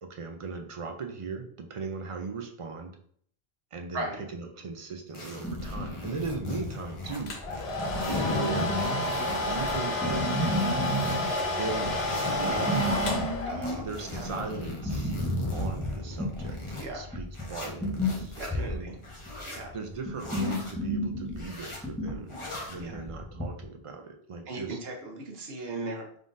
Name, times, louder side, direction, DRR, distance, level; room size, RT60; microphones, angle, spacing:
voice 1, 0.0-2.9 3.7-7.4 8.1-8.8 9.5-10.5 11.4-13.3 13.8-15.2 15.5-16.6 16.9-19.0 19.7-22.4 22.7-24.8, right 4 dB, 50° right, 4 dB, 0.4 m, -38 dB
sound 1, 5.1-7.2 7.5-9.8 10.2-11.4 11.8-13.1 13.6-16.9 17.3-18.5 19.0-19.6 20.2-20.7 21.3-21.8 22.3-22.8, left 2 dB, 35° left, 0.8 m, -38 dB
sound 2, 5.4-23.6, equal, ahead, 0.7 m, -33 dB
Domestic sounds home sounds, 7.3-13.9, left 1 dB, 85° left, 1.0 m, -30 dB
voice 2, 13.5-14.3 16.8-17.2 18.4-18.9 19.4-19.7 22.8-23.0 24.5-26.2, right 2 dB, 75° right, 1 dB, 1.1 m, -38 dB
3.7 x 3.7 x 2.5 m, 0.62 s
omnidirectional pair, 1.1 m